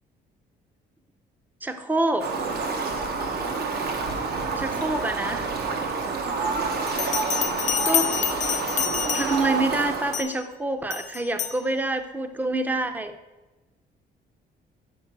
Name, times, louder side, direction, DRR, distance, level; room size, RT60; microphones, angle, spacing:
voice 1, 1.6-2.3 4.6-5.5 7.8-8.1 9.1-13.1, right 2 dB, 10° right, 9 dB, 0.6 m, -26 dB
Fowl, 2.2-10.2, right 4 dB, 70° right, 1.1 m, -28 dB
Bell, 6.9-9.6 10.1-10.4 10.9-11.6, left 9 dB, 45° left, 0.5 m, -28 dB
6.0 x 5.3 x 5.9 m, 1.1 s
cardioid pair, 120°, 17 cm